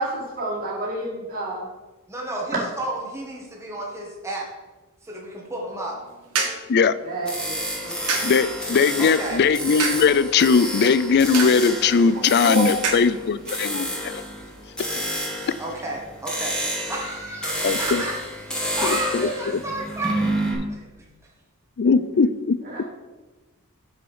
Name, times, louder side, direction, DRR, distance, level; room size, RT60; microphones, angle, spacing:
voice 1, 0.0-1.6 7.0-7.6 12.1-12.9 21.8-21.9 22.6-22.8, right 2 dB, 40° right, -5 dB, 2.1 m, -29 dB
voice 2, 2.1-4.5 5.0-6.0 9.0-9.4 15.6-16.5 16.8-18.2 18.8-20.9, right 2 dB, 15° right, -3 dB, 1.6 m, -31 dB
sound 1, 5.8-15.2, right 4 dB, 85° right, 1.8 m, -33 dB
sound 2, 7.2-20.5, equal, 5° left, 2.1 m, -30 dB
voice 3, 8.2-14.2 17.6-18.0 18.8-19.3 21.8-22.8, left 5 dB, 50° left, 15 dB, 0.4 m, -20 dB
6.9 x 6.1 x 5.6 m, 1.2 s
head